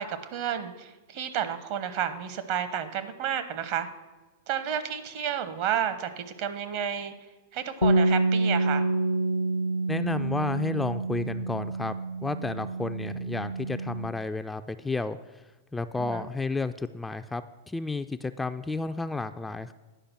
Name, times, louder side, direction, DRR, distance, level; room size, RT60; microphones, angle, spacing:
voice 1, 0.0-3.9 4.5-7.1 7.5-8.9 16.0-16.3, right 9 dB, 50° right, 10 dB, 0.9 m, -31 dB
Bass guitar, 7.8-14.1, right 2 dB, 70° left, 0.5 m, -27 dB
voice 2, 9.9-11.9 12.2-15.2 15.7-19.7, left 3 dB, 10° left, 9 dB, 0.3 m, -31 dB
10.0 x 5.0 x 6.0 m, 1.2 s
figure-of-eight pair, 95°, 0 cm